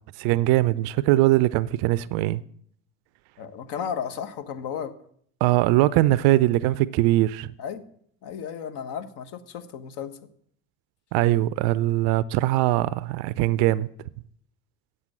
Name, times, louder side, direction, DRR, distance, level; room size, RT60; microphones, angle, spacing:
voice 1, 0.2-2.4 5.4-7.5 11.1-13.9, right 16 dB, 55° right, 0.5 m, -21 dB
voice 2, 3.4-4.9 7.6-7.8 8.2-10.2, left 7 dB, 55° left, 1.3 m, -34 dB
8.0 x 7.4 x 7.6 m
hypercardioid pair, 70°, 48 cm